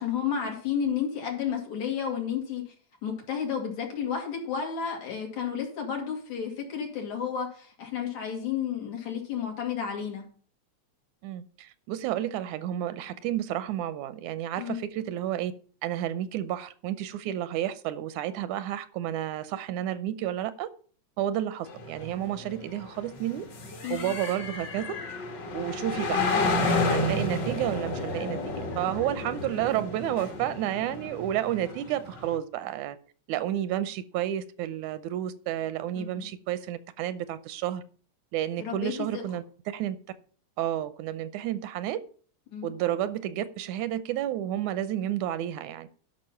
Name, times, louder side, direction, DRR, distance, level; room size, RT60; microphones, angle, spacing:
voice 1, 0.0-2.7 3.0-10.2 14.6-14.8 23.8-24.1 36.0-36.3 38.6-39.2 42.5-42.7, left 7 dB, 70° left, 3.8 m, -32 dB
voice 2, 11.2-15.5 15.8-20.7 21.2-23.5 23.9-24.9 25.5-33.0 33.3-37.8 38.3-40.0 40.6-42.0 42.6-45.9, right 12 dB, 85° right, 2.1 m, -31 dB
sound 1, 21.7-32.3, left 2 dB, 45° left, 1.9 m, -31 dB
12.0 x 5.7 x 5.6 m
omnidirectional pair, 3.3 m